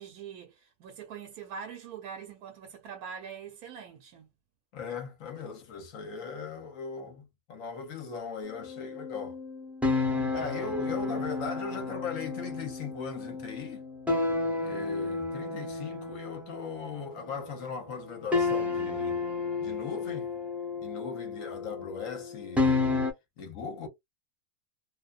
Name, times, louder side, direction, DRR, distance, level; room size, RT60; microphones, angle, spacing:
voice 1, 0.0-4.3 10.6-10.8, right 7 dB, 75° right, 1.1 m, -43 dB
voice 2, 4.7-9.4 10.3-13.8 14.6-19.2 19.6-20.3 20.8-22.8 23.4-23.9, left 5 dB, 65° left, 1.1 m, -39 dB
sound 1, 8.4-17.7 18.3-23.1, left 3 dB, ahead, 0.6 m, -32 dB
2.7 x 2.1 x 2.4 m
omnidirectional pair, 1.6 m